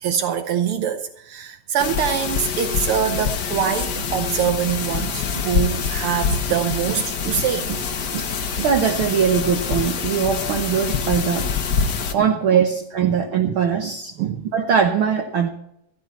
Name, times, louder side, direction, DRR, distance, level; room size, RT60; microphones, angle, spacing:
voice 1, 0.0-7.9 8.1-8.3 8.6-8.7 11.7-11.9 12.2-12.3 13.0-13.6 14.2-14.5, right 8 dB, 85° right, 1.2 m, -24 dB
sound 1, 1.8-12.1, left 6 dB, 60° left, 1.0 m, -25 dB
voice 2, 8.6-11.5 12.1-14.1 14.5-15.5, right 7 dB, 60° right, 1.4 m, -21 dB
13.5 x 13.5 x 4.2 m
omnidirectional pair, 3.4 m